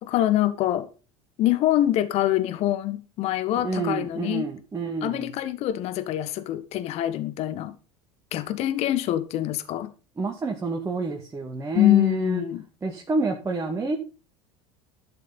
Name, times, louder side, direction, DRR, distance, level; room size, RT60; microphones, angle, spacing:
voice 1, 0.0-0.9 1.4-4.4 5.0-7.7 8.3-9.9 11.7-12.6, left 13 dB, 50° left, 1.4 m, -24 dB
voice 2, 3.5-5.3 10.2-12.4 12.8-14.0, right 3 dB, 20° right, 2.2 m, -28 dB
12.0 x 6.7 x 5.3 m
hypercardioid pair, 80°, 14 cm